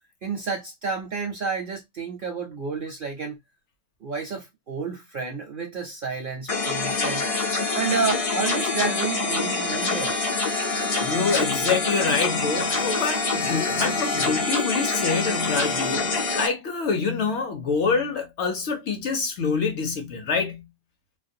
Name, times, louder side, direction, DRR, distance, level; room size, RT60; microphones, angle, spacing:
voice 1, 0.2-3.4 4.0-7.3 7.7-10.2, right 5 dB, 60° right, 0.6 m, -30 dB
sound 1, 6.5-16.5, left 3 dB, 45° left, 0.5 m, -25 dB
voice 2, 11.0-20.7, left 5 dB, 65° left, 0.8 m, -26 dB
2.4 x 2.2 x 2.6 m
omnidirectional pair, 1.4 m